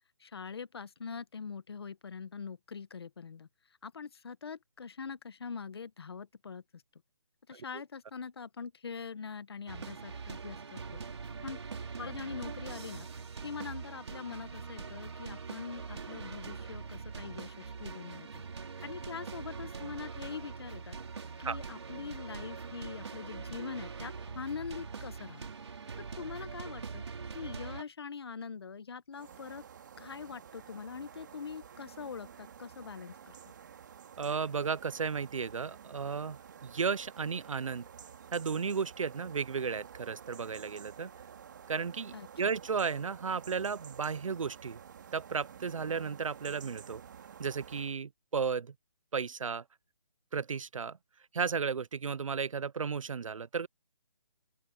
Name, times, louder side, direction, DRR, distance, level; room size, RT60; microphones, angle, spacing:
voice 1, 0.2-3.5 3.8-6.8 7.5-11.0 11.4-11.6 12.0-18.4 18.8-21.0 21.4-25.5 26.0-29.6 30.0-33.3 42.1-42.5, left 5 dB, 50° left, 1.3 m, -43 dB
sound 1, 9.7-27.8, right 5 dB, 55° right, 5.5 m, -43 dB
sound 2, 29.1-48.0, right 8 dB, 35° right, 2.5 m, -51 dB
voice 2, 34.2-37.9 38.3-41.1 41.7-44.8 45.1-47.0 47.4-48.7 49.1-49.6 50.3-51.0 51.3-53.7, right 5 dB, 75° right, 0.7 m, -34 dB
open air
hypercardioid pair, 170°, 17 cm